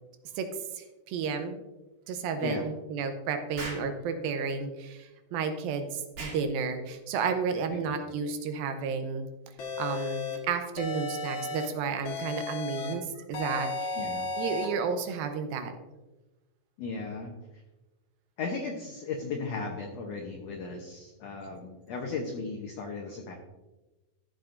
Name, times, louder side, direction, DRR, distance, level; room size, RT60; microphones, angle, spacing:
voice 1, 0.8-1.6 2.1-9.3 9.8-14.0 14.4-15.7, right 5 dB, 80° right, 7 dB, 2.5 m, -32 dB
Explosion, 3.6-3.9 6.1-6.4, right 3 dB, 55° right, 3.4 m, -38 dB
sound 1, 9.6-10.4 10.8-11.7 12.1-12.9 13.3-14.7, left 3 dB, 55° left, 2.1 m, -34 dB
voice 2, 13.9-14.3 16.8-17.3 18.4-23.3, left 4 dB, 80° left, 1 dB, 1.5 m, -36 dB
13.5 x 7.4 x 2.6 m, 1.1 s
omnidirectional pair, 4.3 m